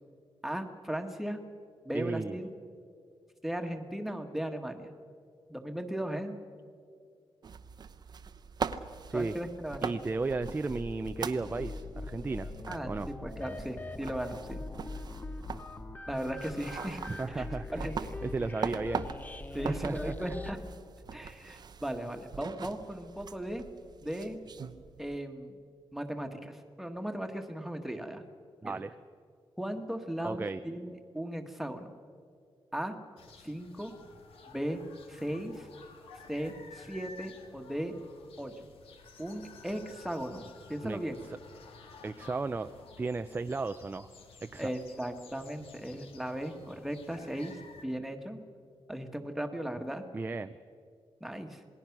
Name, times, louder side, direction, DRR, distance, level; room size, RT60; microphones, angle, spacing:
voice 1, 0.4-1.4 1.8-2.6 3.4-4.9 5.5-6.4 9.1-9.9 12.7-14.6 16.1-17.0 17.3-18.0 19.5-20.6 21.1-23.6 24.0-24.4 25.0-25.6 25.9-28.2 28.6-28.8 29.6-31.9 32.7-32.9 33.4-33.9 34.5-34.8 35.1-35.7 36.3-37.9 38.4-38.5 39.2-41.2 44.6-48.4 48.9-50.0 51.2-51.6, right 1 dB, ahead, 5 dB, 1.5 m, -37 dB
voice 2, 1.9-2.4 9.1-9.3 9.8-12.5 12.9-13.1 17.1-17.9 18.2-19.1 19.6-20.4 28.6-28.9 30.2-30.6 40.8-41.0 42.0-42.7 43.0-44.1 44.4-44.7 50.1-50.5, right 3 dB, 20° right, 9 dB, 0.5 m, -34 dB
sound 1, 7.4-25.2, right 6 dB, 50° right, 0.8 m, -42 dB
sound 2, 10.4-20.5, left 2 dB, 20° left, 0.7 m, -42 dB
sound 3, 33.2-47.8, left 4 dB, 85° left, 2.0 m, -53 dB
27.5 x 19.5 x 6.0 m, 2.3 s
wide cardioid pair, 150°, 9 cm